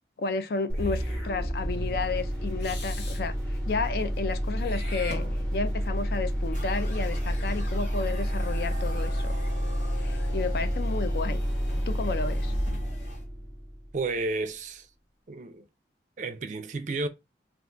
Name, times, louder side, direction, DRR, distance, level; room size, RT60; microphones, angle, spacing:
voice 1, 0.2-5.3 5.5-9.3 10.0-11.4 11.9-12.5, left 4 dB, 60° left, 0.4 m, -32 dB
Meow / Hiss, 0.7-1.3 2.6-3.2 4.6-5.8, left 2 dB, 80° left, 0.8 m, -42 dB
sound 1, 0.7-14.2, equal, 5° left, 0.6 m, -29 dB
sound 2, 6.5-13.2, left 1 dB, 45° left, 0.9 m, -43 dB
voice 2, 13.9-14.9 15.3-15.6 16.2-17.1, right 3 dB, 45° right, 0.4 m, -31 dB
2.4 x 2.3 x 3.7 m
head